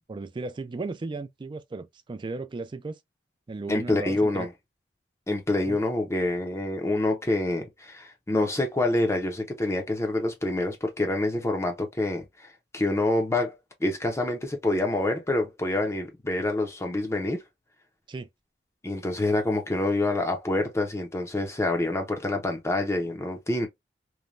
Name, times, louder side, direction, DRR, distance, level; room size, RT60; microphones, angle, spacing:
voice 1, 0.1-3.0 3.5-4.5 5.7-5.8 18.1-18.3, right 3 dB, 25° right, 0.3 m, -35 dB
voice 2, 3.7-4.5 5.3-12.5 12.7-13.6 13.8-17.4 18.8-23.7, left 2 dB, 15° left, 0.6 m, -27 dB
3.1 x 2.2 x 2.4 m
head